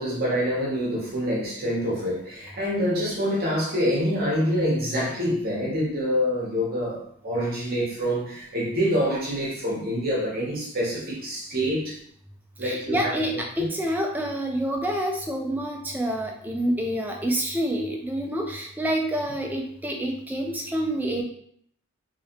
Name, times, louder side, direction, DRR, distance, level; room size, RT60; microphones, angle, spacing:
voice 1, 0.0-7.0 7.2-12.0 12.6-13.1, equal, 45° right, -5 dB, 1.0 m, -26 dB
voice 2, 12.6-21.2, right 1 dB, 10° right, 1 dB, 0.4 m, -27 dB
3.1 x 2.8 x 2.8 m, 0.66 s
head